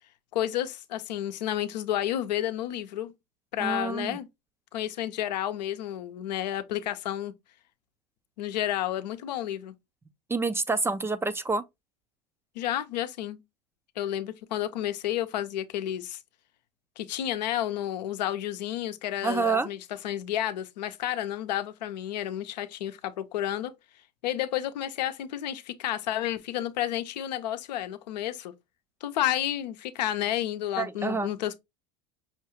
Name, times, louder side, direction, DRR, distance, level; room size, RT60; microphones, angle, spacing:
voice 1, 0.3-3.1 3.5-4.3 4.7-7.3 8.4-9.7 12.5-13.4 14.0-16.2 17.0-19.8 20.0-23.7 24.2-28.5 29.0-31.6, left 12 dB, 85° left, 0.6 m, -31 dB
voice 2, 3.6-4.2 10.3-11.6 19.2-19.7 30.8-31.3, right 4 dB, 10° right, 0.3 m, -27 dB
5.7 x 2.3 x 3.0 m
hypercardioid pair, 95°, 21 cm